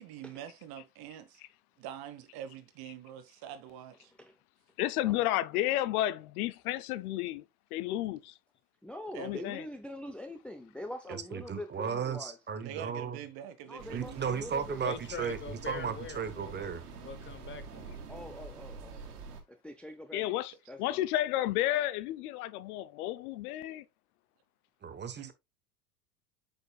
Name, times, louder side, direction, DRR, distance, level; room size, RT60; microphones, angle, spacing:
voice 1, 0.0-1.4 1.8-4.1 9.1-9.4 11.1-11.2 12.6-14.3 25.2-25.3, right 10 dB, 55° right, 1.3 m, -45 dB
voice 2, 4.8-7.4 7.7-8.3 9.2-9.6 20.1-20.5 20.8-23.8, left 14 dB, 75° left, 0.7 m, -31 dB
voice 3, 8.8-12.4 13.7-14.8 18.1-21.0, left 1 dB, 5° left, 0.6 m, -44 dB
voice 4, 11.1-13.2 13.9-16.8 24.8-25.3, right 7 dB, 25° right, 1.1 m, -35 dB
sound 1, 13.8-19.4, right 5 dB, 90° right, 1.7 m, -46 dB
voice 5, 14.8-17.9, left 6 dB, 25° left, 1.0 m, -43 dB
8.0 x 5.5 x 2.3 m
hypercardioid pair, 90°, 45 cm